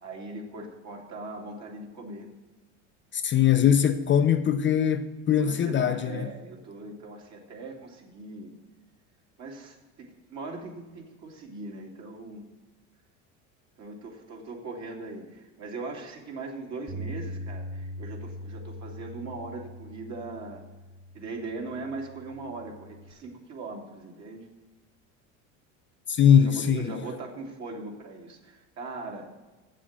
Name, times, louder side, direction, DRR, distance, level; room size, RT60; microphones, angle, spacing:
voice 1, 0.0-2.3 5.4-8.5 9.4-12.4 13.8-20.6 21.1-24.5 26.3-29.3, right 3 dB, 50° right, 2.6 m, -40 dB
voice 2, 3.1-6.3 26.1-27.0, left 8 dB, 35° left, 0.5 m, -22 dB
Bass guitar, 16.9-23.1, equal, 25° right, 1.3 m, -41 dB
7.9 x 7.5 x 7.1 m
supercardioid pair, 95°, 35 cm